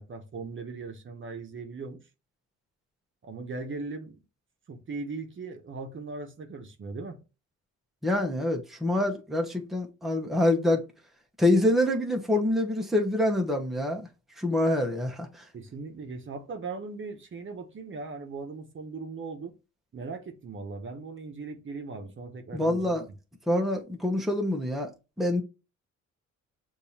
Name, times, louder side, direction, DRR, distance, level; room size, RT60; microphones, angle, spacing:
voice 1, 0.0-2.0 3.2-4.2 4.7-7.2 15.5-19.5 19.9-23.2, right 4 dB, 40° right, 1.0 m, -39 dB
voice 2, 8.0-10.8 11.4-14.1 14.4-15.4 22.5-23.0 23.5-24.9 25.2-25.4, left 1 dB, ahead, 0.9 m, -26 dB
6.8 x 2.7 x 2.8 m
cardioid pair, 90°, 30 cm